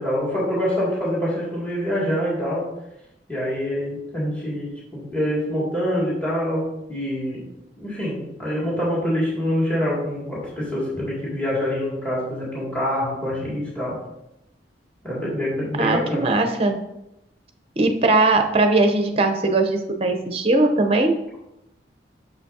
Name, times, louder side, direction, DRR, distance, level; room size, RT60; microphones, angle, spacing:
voice 1, 0.0-2.7 3.3-14.0 15.0-16.3, equal, 10° left, -6 dB, 2.2 m, -25 dB
voice 2, 15.8-16.8 17.8-21.1, right 2 dB, 35° right, 6 dB, 0.7 m, -19 dB
6.3 x 6.0 x 2.7 m, 0.87 s
head